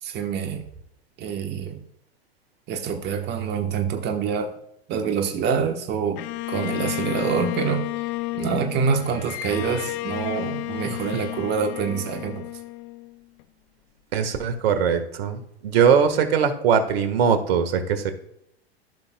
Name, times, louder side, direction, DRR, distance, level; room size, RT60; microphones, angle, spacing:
voice 1, 0.0-0.6 1.2-1.8 2.7-4.5 4.9-7.9 8.3-12.5, right 6 dB, 35° right, 5 dB, 1.1 m, -26 dB
Bowed string instrument, 6.2-13.4, left 18 dB, 40° left, 0.5 m, -32 dB
voice 2, 14.1-18.1, right 7 dB, 70° right, 8 dB, 1.5 m, -21 dB
14.0 x 5.8 x 2.2 m, 0.78 s
hypercardioid pair, 105°, 31 cm